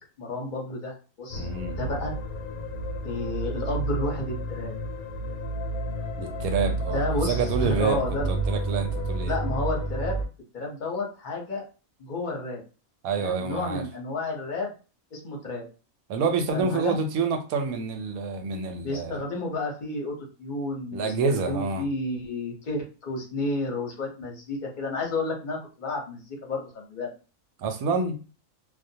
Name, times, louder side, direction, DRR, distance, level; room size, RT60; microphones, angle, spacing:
voice 1, 0.2-1.5 1.8-2.1 3.0-4.7 6.9-8.3 9.2-10.2 10.5-11.6 12.0-12.6 13.2-14.7 15.1-15.6 16.5-17.0 18.8-20.1 20.4-21.1 21.5-27.1, left 2 dB, 45° left, 0 dB, 0.6 m, -31 dB
sound 1, 1.3-10.3, right 2 dB, 90° left, 1.0 m, -30 dB
voice 2, 1.4-1.8 6.2-8.0 8.3-9.3 13.0-13.8 16.1-19.2 20.9-21.8 27.6-28.2, right 4 dB, 90° right, 6 dB, 1.1 m, -27 dB
2.3 x 2.1 x 2.7 m, 0.34 s
omnidirectional pair, 1.5 m